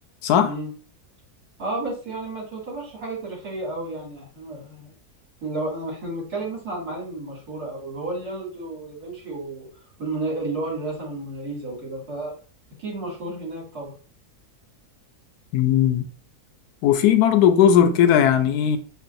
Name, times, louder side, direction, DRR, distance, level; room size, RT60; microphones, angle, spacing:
voice 1, 0.2-0.5 15.5-16.0 16.8-18.8, left 9 dB, 85° left, 1.1 m, -17 dB
voice 2, 1.6-4.9 5.4-9.7 10.0-12.3 12.8-13.9, right 2 dB, 85° right, 2.6 m, -32 dB
5.4 x 2.4 x 2.5 m
omnidirectional pair, 1.6 m